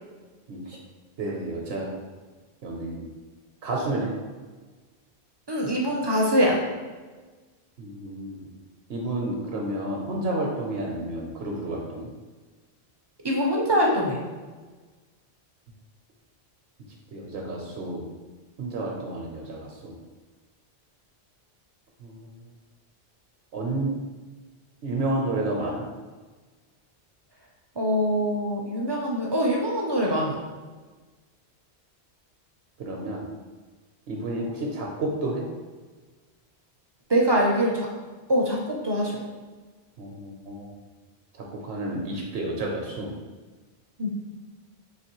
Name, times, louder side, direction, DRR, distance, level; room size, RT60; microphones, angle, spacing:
voice 1, 0.5-0.8 1.2-2.0 2.6-3.1 3.6-4.1 7.8-8.4 8.9-12.1 17.1-18.0 18.6-19.9 22.0-22.3 23.5-23.9 24.8-25.8 32.8-33.2 34.1-35.5 40.0-40.7 41.4-43.1, right 2 dB, 70° right, -1 dB, 0.8 m, -30 dB
voice 2, 5.5-6.6 13.2-14.2 27.8-30.4 37.1-37.9 38.3-39.2 44.0-44.1, equal, 35° right, -2 dB, 0.4 m, -23 dB
4.0 x 2.9 x 2.9 m, 1.3 s
omnidirectional pair, 1.1 m